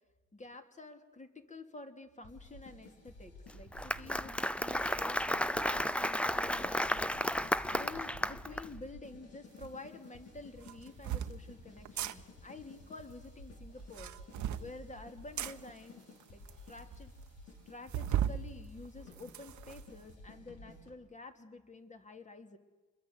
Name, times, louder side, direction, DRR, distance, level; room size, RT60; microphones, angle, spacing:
voice 1, 0.3-6.9 7.7-14.1 14.6-16.0 16.3-16.4 16.7-17.1 17.7-22.6, left 2 dB, 25° left, 6 dB, 3.0 m, -50 dB
sound 1, 2.2-20.9, left 1 dB, 55° left, 6.4 m, -53 dB
Applause, 3.5-8.7, left 1 dB, 5° left, 0.8 m, -33 dB
sound 2, 9.6-9.7 10.6-11.3 11.8-12.1 13.8-14.7 15.4-15.5 16.2-16.3 16.5-16.6 16.9-17.0 17.9-18.4 18.8-19.8, right 10 dB, 70° right, 1.3 m, -35 dB
27.5 x 22.0 x 8.2 m, 1.2 s
cardioid pair, 90°, 30 cm